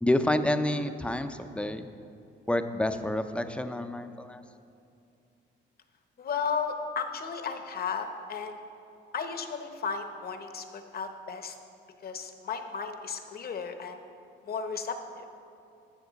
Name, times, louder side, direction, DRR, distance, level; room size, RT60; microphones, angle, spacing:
voice 1, 0.0-1.9 2.5-4.4, left 1 dB, 5° left, 9 dB, 0.5 m, -28 dB
voice 2, 6.2-8.6 9.1-11.6 12.0-14.0 14.5-15.2, left 5 dB, 50° left, 7 dB, 0.9 m, -34 dB
12.0 x 7.0 x 4.0 m, 2.6 s
cardioid pair, 90°, 20 cm